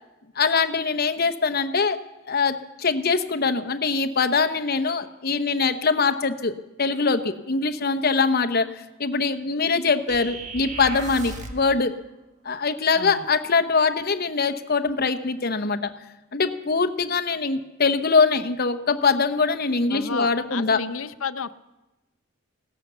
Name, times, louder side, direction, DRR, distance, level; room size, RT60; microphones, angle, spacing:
voice 1, 0.4-2.0 2.3-12.0 12.4-15.9 16.3-20.8, left 4 dB, 50° left, 9 dB, 0.9 m, -23 dB
sound 1, 10.1-11.7, right 3 dB, 35° right, 1.3 m, -36 dB
voice 2, 12.9-13.3 19.9-21.5, left 5 dB, 80° left, 13 dB, 0.7 m, -32 dB
17.5 x 11.5 x 6.9 m, 1.0 s
head